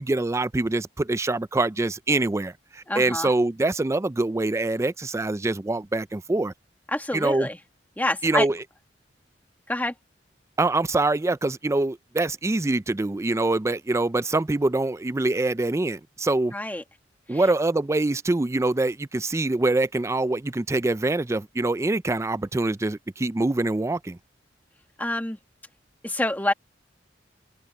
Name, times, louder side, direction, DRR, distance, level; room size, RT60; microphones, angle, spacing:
voice 1, 0.0-6.5 7.1-7.5 8.2-8.6 10.6-16.5 17.3-24.2, right 2 dB, 15° right, 0.4 m, -24 dB
voice 2, 2.9-3.3 6.9-7.6 8.0-8.5 9.7-9.9 16.5-16.8 17.3-17.4 25.0-25.4 26.0-26.5, left 1 dB, 10° left, 1.8 m, -27 dB
head